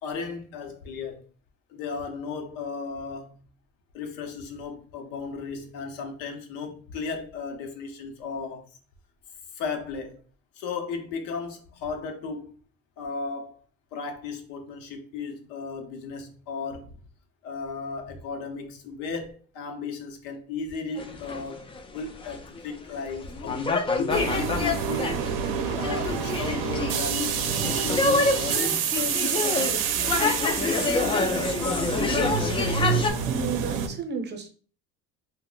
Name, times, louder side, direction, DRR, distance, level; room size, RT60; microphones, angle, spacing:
voice 1, 0.0-1.2 1.7-3.4 3.9-8.7 9.5-10.2 10.6-12.5 13.0-13.6 13.9-17.0 17.4-23.7 24.0-25.1 25.7-30.4 30.8-32.0, left 5 dB, 85° left, 0.7 m, -35 dB
sound 1, 21.0-22.6 23.0-33.1, left 3 dB, 20° left, 0.3 m, -27 dB
sound 2, 24.1-33.9, right 7 dB, 70° right, 0.6 m, -28 dB
voice 2, 32.8-34.5, right 5 dB, 30° right, 0.7 m, -34 dB
2.4 x 2.1 x 3.7 m
cardioid pair, 115°, 32 cm